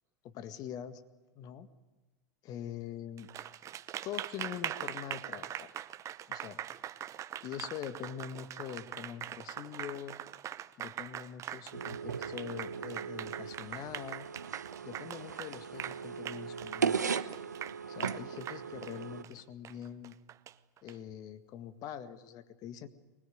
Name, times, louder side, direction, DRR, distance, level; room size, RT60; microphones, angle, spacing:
voice 1, 0.2-1.0 1.3-1.7 2.4-3.3 4.0-5.7 6.3-6.6 7.4-10.2 10.8-14.3 14.8-17.0 17.9-20.2 20.8-22.9, left 9 dB, 45° left, 10 dB, 1.8 m, -43 dB
Applause, 3.2-20.9, right 11 dB, 35° right, 0.9 m, -42 dB
sound 1, 11.7-19.2, right 6 dB, 85° right, 1.0 m, -37 dB
24.5 x 20.5 x 9.4 m, 1.2 s
hypercardioid pair, 90°, 9 cm